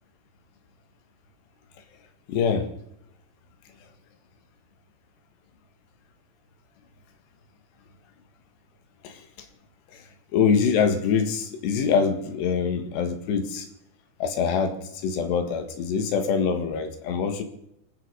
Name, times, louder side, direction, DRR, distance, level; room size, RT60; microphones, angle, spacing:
voice 1, 2.3-2.7 9.0-9.2 9.9-10.0 10.3-13.7 14.2-17.4, left 6 dB, 90° left, 7 dB, 3.9 m, -24 dB
26.5 x 9.9 x 4.0 m, 0.78 s
omnidirectional pair, 4.8 m